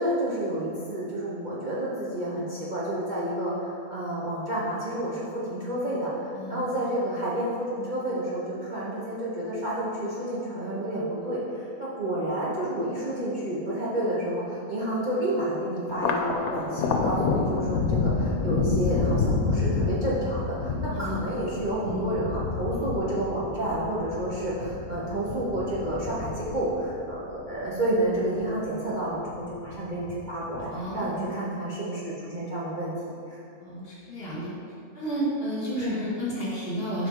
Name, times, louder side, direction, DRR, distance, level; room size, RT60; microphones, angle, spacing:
voice 1, 0.0-20.7 21.0-32.9 33.3-33.4 35.8-36.0, right 1 dB, 40° right, -8 dB, 0.9 m, -30 dB
voice 2, 6.3-6.7 20.9-21.3 21.8-22.3 30.6-31.3 33.6-34.5 34.9-37.1, equal, 40° left, -7 dB, 2.0 m, -32 dB
Thunder, 15.9-28.6 28.9-29.8 30.1-30.9, left 4 dB, 85° left, 1.1 m, -29 dB
7.0 x 5.0 x 3.6 m, 2.5 s
omnidirectional pair, 1.5 m